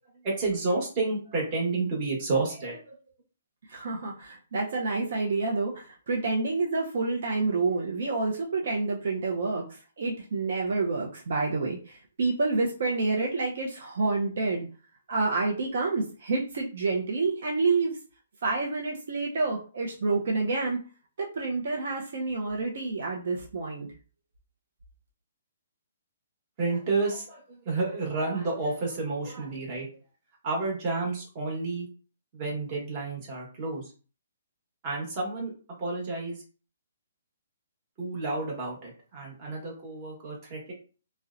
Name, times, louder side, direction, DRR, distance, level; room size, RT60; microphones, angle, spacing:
voice 1, 0.2-2.9 26.6-29.9 30.4-31.9 32.3-33.8 34.8-35.5 35.8-36.4 38.0-40.7, right 3 dB, 30° right, -2 dB, 1.0 m, -30 dB
voice 2, 3.7-14.7 15.1-18.0 18.4-20.8 21.2-23.9, right 3 dB, 60° right, -1 dB, 0.5 m, -28 dB
2.7 x 2.0 x 2.4 m, 0.38 s
hypercardioid pair, 160°, 0 cm